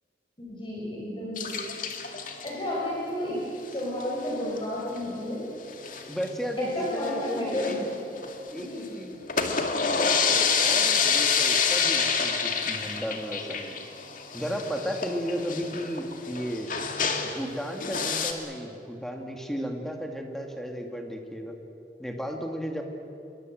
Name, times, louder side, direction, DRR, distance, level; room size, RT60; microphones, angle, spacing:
voice 1, 0.4-1.6 2.4-3.4 3.7-5.4 6.6-7.9 8.5-8.9, left 1 dB, 30° left, -5 dB, 5.7 m, -32 dB
sound 1, 1.4-2.5 3.7-4.0 4.3-4.4 4.6-4.7 5.0-5.1 5.7-6.3 6.7-8.6 9.1-17.5 17.8-18.3, left 6 dB, 50° left, 2.3 m, -27 dB
voice 2, 6.1-7.8 8.5-8.7 9.0-9.2 9.8-13.8 14.3-16.7 17.3-21.6 22.0-22.8, equal, ahead, 3 dB, 2.5 m, -34 dB
27.0 x 22.5 x 8.0 m, 2.8 s
head